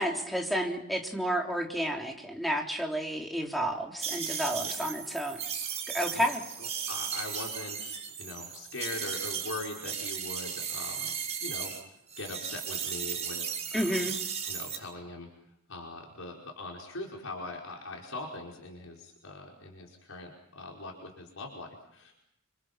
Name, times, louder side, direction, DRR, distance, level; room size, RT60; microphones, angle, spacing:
voice 1, 0.0-5.4 5.9-6.4 13.7-14.1, equal, ahead, 1 dB, 3.4 m, -31 dB
sound 1, 4.0-11.8 12.1-14.8, right 7 dB, 30° right, 5.5 m, -36 dB
voice 2, 6.6-11.7 12.2-13.4 13.7-14.1 14.5-15.3 15.7-22.1, left 2 dB, 75° left, -1 dB, 5.1 m, -41 dB
29.0 x 26.0 x 6.0 m, 0.74 s
head